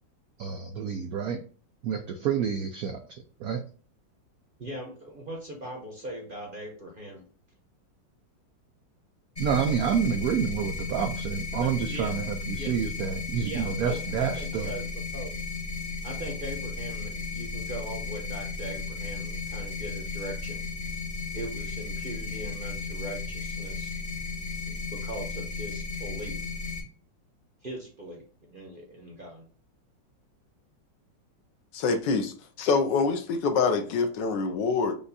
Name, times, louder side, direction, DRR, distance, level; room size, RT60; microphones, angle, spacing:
voice 1, 0.4-1.4 1.8-3.6 9.4-14.7, right 7 dB, 90° right, 5 dB, 0.8 m, -29 dB
voice 2, 4.6-7.3 11.6-12.2 12.5-12.8 13.4-15.3 16.0-20.6 21.3-23.9 24.7-26.4 27.6-29.5, right 1 dB, 45° right, -1 dB, 0.7 m, -40 dB
sound 1, 9.4-26.8, left 4 dB, 30° left, 0.6 m, -35 dB
voice 3, 31.7-34.9, left 4 dB, 75° left, 7 dB, 1.2 m, -25 dB
5.1 x 2.3 x 4.0 m, 0.42 s
omnidirectional pair, 2.1 m